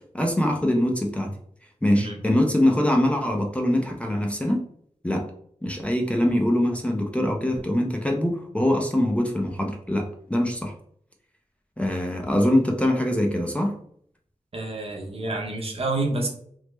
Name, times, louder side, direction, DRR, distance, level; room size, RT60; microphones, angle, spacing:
voice 1, 0.1-1.3 1.8-4.6 5.0-5.3 5.6-10.7 11.8-13.8, left 1 dB, 10° left, 1 dB, 0.4 m, -23 dB
voice 2, 14.5-16.3, right 2 dB, 55° right, 1 dB, 0.7 m, -28 dB
3.2 x 2.0 x 3.1 m, 0.63 s
wide cardioid pair, 90°, 12 cm